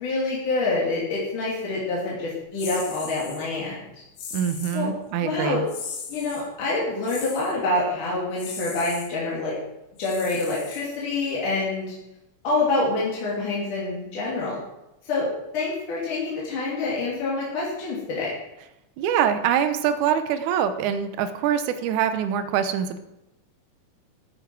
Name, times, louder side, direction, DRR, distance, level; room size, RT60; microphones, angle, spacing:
voice 1, 0.0-3.9 4.7-4.9 5.2-5.6 6.1-9.5 10.0-11.9 12.4-14.6 15.1-15.3 15.5-18.3, left 2 dB, 70° left, -6 dB, 4.5 m, -26 dB
sound 1, 2.6-3.4 4.2-4.8 5.7-6.5 7.0-7.5 8.4-9.1 10.0-11.1, left 6 dB, 85° left, 3.4 m, -38 dB
voice 2, 4.3-5.6 19.0-23.0, right 9 dB, 70° right, 10 dB, 2.2 m, -24 dB
14.0 x 9.2 x 4.7 m, 0.90 s
omnidirectional pair, 3.8 m